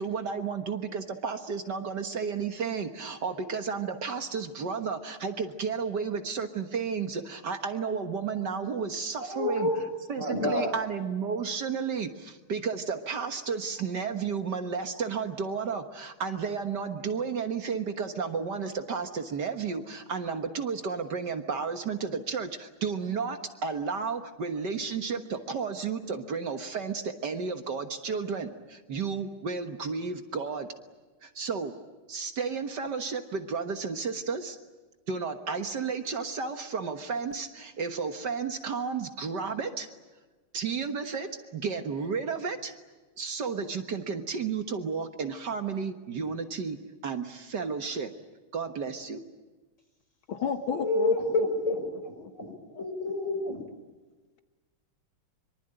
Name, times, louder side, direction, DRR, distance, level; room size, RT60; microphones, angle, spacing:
voice 1, 0.0-9.7 10.1-30.7 31.2-31.7 32.1-34.6 35.1-39.9 40.5-42.7 43.2-46.8 47.0-48.1 48.5-49.2, right 5 dB, 55° right, 7 dB, 1.9 m, -32 dB
voice 2, 9.2-9.8 10.2-10.7 50.8-53.6, left 2 dB, 35° left, 3 dB, 6.4 m, -29 dB
voice 3, 50.3-51.5 51.9-52.8, left 6 dB, 80° left, 8 dB, 2.0 m, -34 dB
25.0 x 24.0 x 9.0 m, 1.3 s
omnidirectional pair, 2.2 m